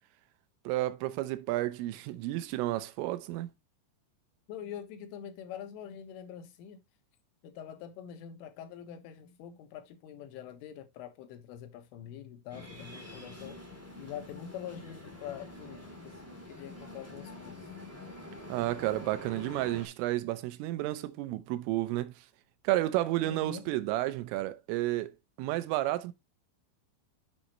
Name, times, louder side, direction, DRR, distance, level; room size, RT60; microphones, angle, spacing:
voice 1, 0.7-3.5 18.5-22.1 22.7-25.1 25.4-26.1, right 16 dB, 90° right, 3.4 m, -31 dB
voice 2, 4.5-6.8 7.4-13.6 14.0-17.7 23.2-23.7, left 9 dB, 80° left, 3.8 m, -45 dB
sound 1, 12.5-19.9, left 2 dB, 10° right, 0.8 m, -46 dB
8.3 x 8.1 x 3.0 m
omnidirectional pair, 5.7 m